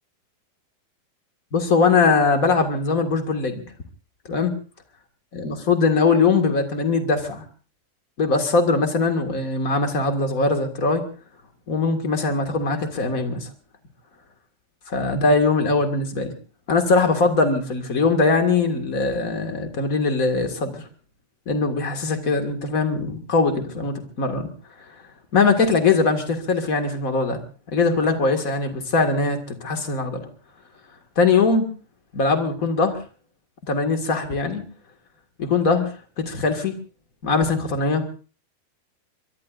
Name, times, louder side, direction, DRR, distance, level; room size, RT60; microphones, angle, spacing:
voice 1, 1.5-3.6 4.3-4.5 5.3-7.4 8.2-11.1 11.7-13.5 14.9-16.3 16.7-20.8 21.4-24.5 25.3-27.4 27.7-30.3 31.1-31.7 32.1-33.0 33.7-34.6 35.4-36.8 37.2-38.1, left 4 dB, 35° left, 6 dB, 1.5 m, -21 dB
23.5 x 23.0 x 2.5 m, 0.38 s
omnidirectional pair, 4.3 m